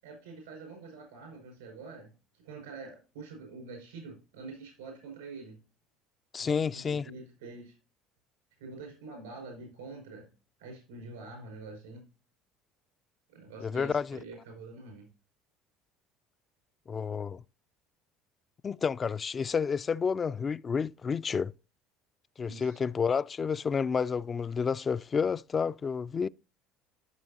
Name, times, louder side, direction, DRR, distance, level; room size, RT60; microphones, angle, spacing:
voice 1, 0.0-5.6 6.4-7.7 8.6-10.3 10.6-12.0 13.3-15.1 22.5-22.8, right 3 dB, 90° right, 5.2 m, -46 dB
voice 2, 6.3-7.1 13.6-14.2 16.9-17.4 18.6-21.5 22.4-26.3, left 6 dB, 35° left, 0.3 m, -30 dB
14.0 x 6.3 x 2.8 m
hypercardioid pair, 75°, 0 cm